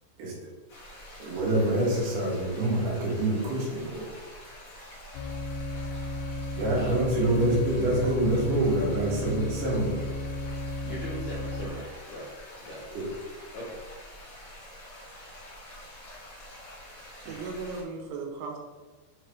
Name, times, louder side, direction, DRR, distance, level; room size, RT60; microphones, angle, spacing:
sound 1, 0.7-17.8, equal, 35° left, 1.5 m, -47 dB
voice 1, 1.2-4.1 6.6-10.0 12.9-13.1 17.3-17.4, right 1 dB, 65° right, -4 dB, 3.5 m, -26 dB
sound 2, 5.1-11.7, left 1 dB, 90° left, 3.1 m, -34 dB
voice 2, 10.8-12.3 12.6-12.9 13.5-13.8, equal, 65° left, -6 dB, 1.7 m, -39 dB
voice 3, 17.2-18.6, right 4 dB, 90° right, 1 dB, 3.5 m, -36 dB
7.2 x 4.0 x 4.7 m, 1.3 s
omnidirectional pair, 5.2 m